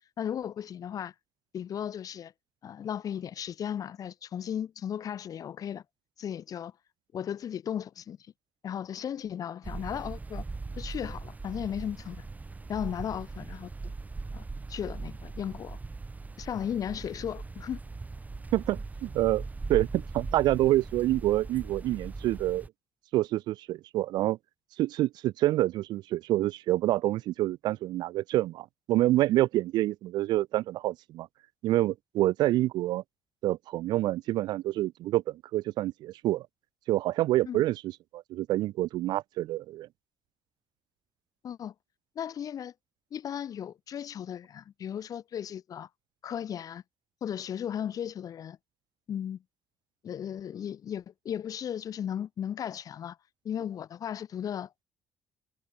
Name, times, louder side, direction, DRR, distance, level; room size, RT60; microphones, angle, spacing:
voice 1, 0.2-1.1 1.5-2.3 2.6-5.8 6.2-6.7 7.1-8.2 8.6-10.4 10.8-12.3 12.7-13.9 14.3-14.4 14.7-15.8 16.4-17.8 37.5-37.6 41.4-41.7 42.1-42.7 43.1-45.9 46.2-46.8 47.2-48.6 49.1-49.4 50.0-53.2 53.4-54.8, left 9 dB, 55° left, 1.4 m, -36 dB
sound 1, 9.6-22.7, right 3 dB, 20° right, 1.7 m, -40 dB
voice 2, 18.5-22.7 23.1-24.4 24.8-31.3 31.6-33.0 33.4-36.5 36.9-37.8 38.1-39.9, right 15 dB, 80° right, 0.4 m, -27 dB
cardioid pair, 100°, 7 cm